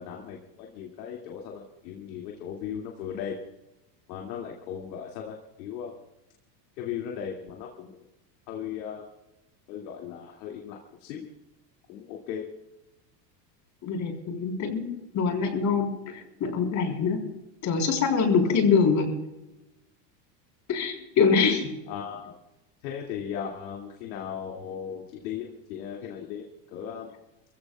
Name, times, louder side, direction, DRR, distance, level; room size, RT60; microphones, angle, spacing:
voice 1, 0.0-3.4 4.1-5.9 6.8-8.0 8.5-9.0 9.7-11.3 11.9-12.5 18.3-18.4 21.9-22.3 22.8-27.1, left 8 dB, 85° left, -1 dB, 2.6 m, -37 dB
voice 2, 13.8-14.9 15.1-17.2 17.6-19.1 20.7-21.7, left 5 dB, 35° left, 2 dB, 4.0 m, -24 dB
28.5 x 16.0 x 2.4 m, 0.95 s
supercardioid pair, 145°, 49 cm